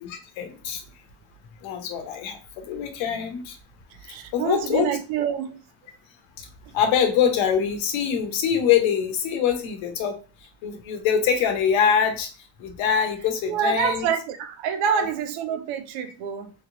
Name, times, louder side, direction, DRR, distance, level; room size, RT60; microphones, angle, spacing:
voice 1, 0.0-0.8 1.6-3.6 4.3-4.9 6.4-6.5 6.7-10.2 10.6-12.3 12.6-14.1 14.9-15.1, left 8 dB, 85° left, 0.8 m, -24 dB
voice 2, 4.0-5.6 6.7-6.8 13.4-16.5, right 8 dB, 90° right, 0.6 m, -27 dB
3.5 x 2.8 x 2.5 m
supercardioid pair, 55°, 46 cm